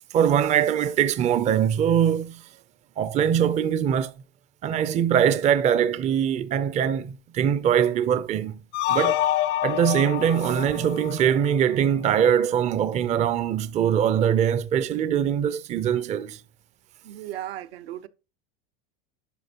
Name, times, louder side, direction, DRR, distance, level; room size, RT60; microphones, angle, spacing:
voice 1, 0.1-2.4 3.0-4.1 4.6-8.6 8.9-9.2 9.6-16.4, right 9 dB, 25° right, 0.4 m, -22 dB
sound 1, 8.7-11.9, left 13 dB, 35° left, 0.4 m, -27 dB
voice 2, 17.0-18.1, right 13 dB, 80° right, 0.8 m, -36 dB
11.5 x 6.1 x 2.9 m
supercardioid pair, 120°, 30 cm